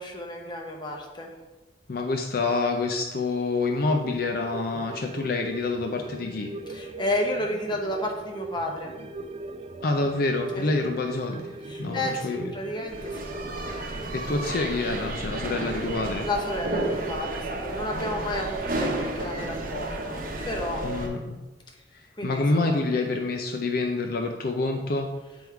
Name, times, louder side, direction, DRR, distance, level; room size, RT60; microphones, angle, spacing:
voice 1, 0.0-1.3 6.7-8.9 10.5-10.6 11.6-13.3 16.2-20.8 22.2-22.6, left 1 dB, 25° left, 1 dB, 0.9 m, -32 dB
voice 2, 1.9-6.5 9.8-11.5 11.8-12.5 14.1-16.3 20.8-21.4 22.2-25.1, left 3 dB, 60° left, 3 dB, 0.5 m, -27 dB
sound 1, 3.8-20.6 21.0-21.1, right 2 dB, 35° right, 0.3 m, -40 dB
sound 2, 12.9-21.1, right 2 dB, 55° right, 0.9 m, -32 dB
7.9 x 3.5 x 4.6 m, 1.2 s
head